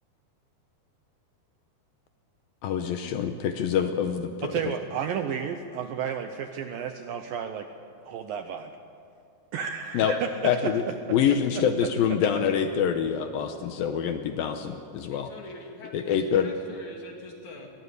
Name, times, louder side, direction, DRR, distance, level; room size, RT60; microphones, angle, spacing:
voice 1, 2.6-4.7 9.9-10.1 10.4-10.8 11.1-15.3 15.9-16.5, left 8 dB, 75° left, 7 dB, 2.2 m, -26 dB
voice 2, 4.4-7.7 8.1-8.7 9.5-10.7 11.6-11.9, right 8 dB, 85° right, 7 dB, 2.0 m, -32 dB
voice 3, 15.1-17.7, left 2 dB, 50° left, 1 dB, 3.3 m, -44 dB
23.0 x 17.5 x 8.3 m, 2.4 s
omnidirectional pair, 5.1 m